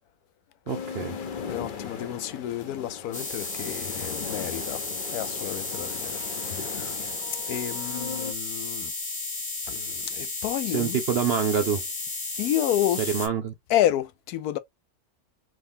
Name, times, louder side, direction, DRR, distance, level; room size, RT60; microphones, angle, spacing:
sound 1, 0.7-8.3, left 6 dB, 55° left, 0.5 m, -38 dB
voice 1, 0.7-1.1 10.7-11.8 13.1-13.5, right 7 dB, 65° right, 0.6 m, -26 dB
voice 2, 1.5-4.8 5.1-7.0 7.5-8.9 9.7-11.0 12.4-13.1 13.7-14.6, left 12 dB, 85° left, 1.1 m, -30 dB
sound 2, 3.1-13.3, left 3 dB, 40° left, 1.4 m, -33 dB
3.6 x 3.0 x 2.6 m
omnidirectional pair, 1.6 m